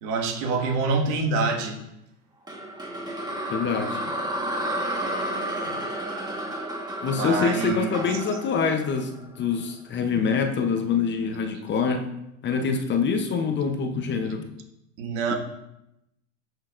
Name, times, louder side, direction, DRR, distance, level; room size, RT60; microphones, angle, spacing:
voice 1, 0.0-1.8 5.6-5.7 7.0-8.0 15.0-15.3, right 3 dB, 65° right, 1.8 m, -26 dB
sound 1, 2.5-9.6, right 1 dB, 10° right, 1.3 m, -32 dB
voice 2, 3.5-4.1 7.0-12.1 12.4-14.5, left 5 dB, 30° left, 0.8 m, -25 dB
14.5 x 6.4 x 2.5 m
supercardioid pair, 120°, 40 cm